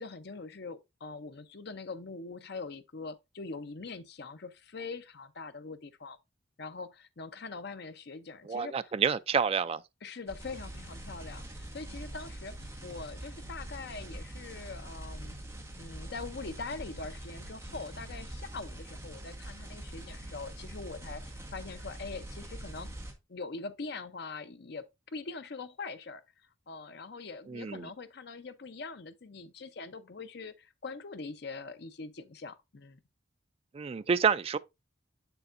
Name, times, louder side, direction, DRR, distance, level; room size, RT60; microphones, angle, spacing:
voice 1, 0.0-6.2 6.6-8.9 10.0-15.4 15.8-22.9 23.3-26.2 26.7-33.0, left 4 dB, 60° left, 0.7 m, -43 dB
voice 2, 8.5-9.8 27.5-27.9 33.7-34.6, right 6 dB, 30° right, 0.3 m, -28 dB
sound 1, 10.3-23.1, right 1 dB, 15° right, 1.3 m, -44 dB
6.9 x 6.8 x 2.5 m
head